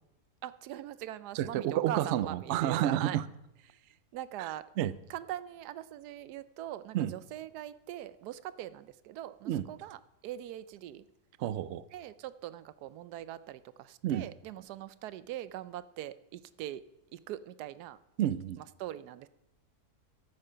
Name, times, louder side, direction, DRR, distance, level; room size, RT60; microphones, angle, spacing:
voice 1, 0.4-3.2 3.7-4.7 5.1-11.0 11.9-16.8 17.1-18.0 18.6-19.3, right 13 dB, 90° right, 16 dB, 1.2 m, -42 dB
voice 2, 1.3-3.2 4.4-4.5 4.8-5.0 6.9-7.1 9.5-9.7 11.4-11.8 14.0-14.3 18.2-18.6, right 12 dB, 70° right, 18 dB, 0.6 m, -30 dB
13.5 x 8.9 x 5.6 m, 0.92 s
omnidirectional pair, 1.7 m